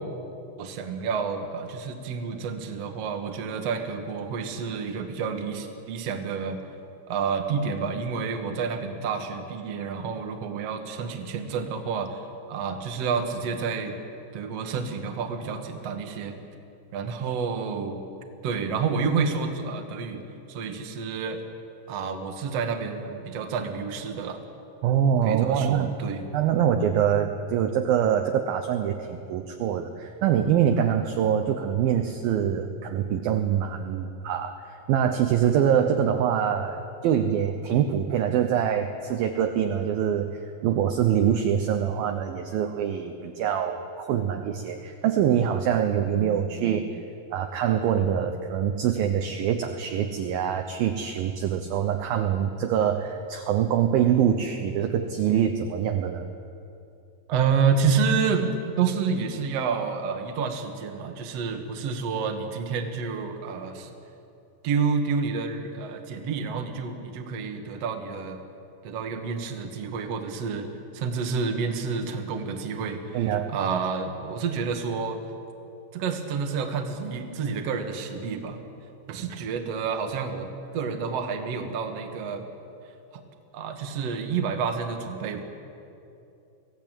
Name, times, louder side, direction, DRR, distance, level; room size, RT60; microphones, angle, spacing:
voice 1, 0.6-6.6 7.1-12.2 12.5-14.0 14.3-16.3 16.9-18.0 18.4-20.2 20.5-21.4 21.9-24.4 25.2-26.2 46.2-46.9 57.3-63.9 64.6-68.4 68.8-70.7 70.9-75.2 75.9-78.6 79.1-80.5 80.7-82.4 83.1-83.2 83.5-85.4, right 5 dB, 55° right, 5 dB, 1.9 m, -29 dB
voice 2, 24.8-25.9 26.3-40.3 40.6-46.9 47.3-56.3 73.1-73.5, right 9 dB, 75° right, 6 dB, 2.2 m, -24 dB
23.5 x 16.5 x 9.1 m, 2.7 s
omnidirectional pair, 5.4 m